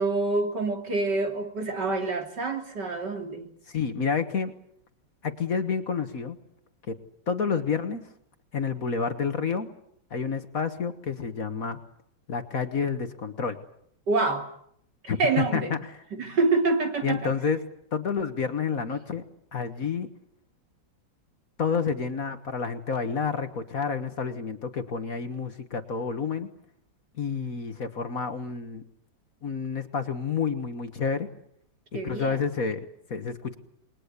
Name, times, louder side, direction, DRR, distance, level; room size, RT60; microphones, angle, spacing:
voice 1, 0.0-3.5 14.1-14.5 15.2-15.7 16.1-17.3 31.9-32.4, right 3 dB, 60° right, 4 dB, 3.4 m, -26 dB
voice 2, 3.7-4.5 5.2-6.4 6.9-7.0 7.3-8.0 8.5-9.7 10.1-11.8 12.3-13.6 15.1-15.9 17.0-17.6 17.9-19.2 19.5-20.1 21.6-26.5 27.2-28.8 29.4-31.3 31.9-33.5, left 5 dB, 50° left, 9 dB, 1.7 m, -29 dB
28.5 x 21.5 x 8.2 m, 0.71 s
omnidirectional pair, 2.1 m